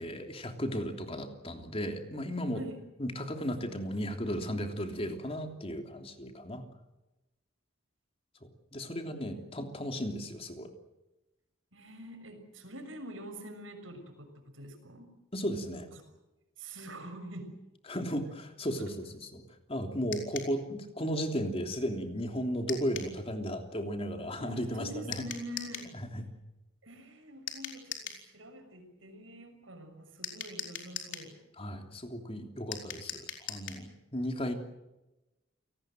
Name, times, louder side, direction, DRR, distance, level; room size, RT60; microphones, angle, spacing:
voice 1, 0.0-2.6 3.0-6.6 8.4-10.7 15.3-15.9 17.9-19.4 19.7-25.2 25.9-26.3 31.6-34.5, equal, 30° left, 5 dB, 3.2 m, -35 dB
voice 2, 11.7-14.3 14.5-15.1 16.6-17.5 24.4-25.9 26.8-31.3, right 1 dB, 85° right, 7 dB, 6.5 m, -45 dB
sound 1, 20.1-20.5 22.7-23.1 25.1-25.9 27.5-28.2 30.2-31.3 32.7-33.8, left 8 dB, 70° left, 4.4 m, -40 dB
29.0 x 19.0 x 7.8 m, 1.0 s
head